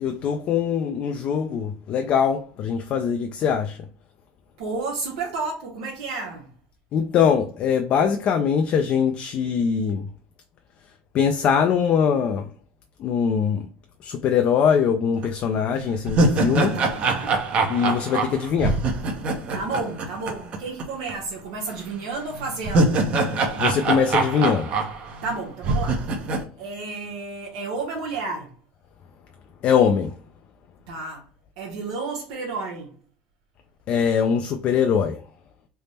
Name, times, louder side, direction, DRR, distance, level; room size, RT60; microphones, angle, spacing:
voice 1, 0.0-3.8 6.9-10.1 11.1-12.4 13.0-13.7 14.0-16.8 17.7-18.8 23.6-24.7 29.6-30.1 33.9-35.2, left 7 dB, 40° left, 0.3 m, -22 dB
voice 2, 4.6-6.5 16.7-17.4 19.5-23.1 25.2-26.1 26.6-28.5 30.9-31.2 31.6-32.9, right 3 dB, 80° right, 0.8 m, -31 dB
sound 1, 15.2-15.3 15.8-20.8 21.1-21.2 22.4-25.3 25.6-26.4, right 3 dB, 40° right, 0.7 m, -23 dB
3.4 x 2.0 x 4.0 m
cardioid pair, 145°, 3 cm